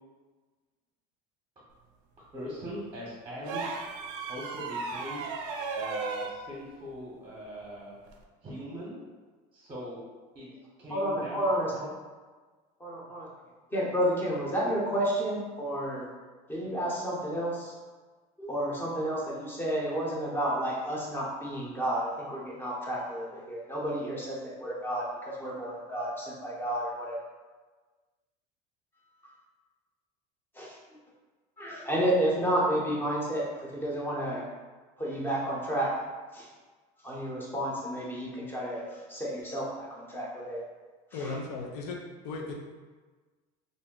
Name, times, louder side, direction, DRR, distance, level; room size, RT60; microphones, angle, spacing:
voice 1, 2.3-3.6 4.3-5.2 5.8-8.0 8.4-8.9 9.5-10.0 10.3-10.5 10.8-11.5 11.8-11.9, equal, 25° right, -6 dB, 0.8 m, -40 dB
sound 1, 3.4-6.4 8.1-8.2, right 4 dB, 70° right, 0.4 m, -35 dB
voice 2, 10.9-11.7 12.8-13.3 13.7-16.1 16.5-17.7 18.4-27.2 30.5-30.8 31.6-34.4 35.0-35.9 36.3-36.5 37.0-40.6 41.1-41.4, right 1 dB, 10° left, -5 dB, 0.7 m, -31 dB
voice 3, 41.1-42.0 42.2-42.5, left 3 dB, 90° left, 1 dB, 0.5 m, -36 dB
2.6 x 2.1 x 3.7 m, 1.4 s
supercardioid pair, 125°, 19 cm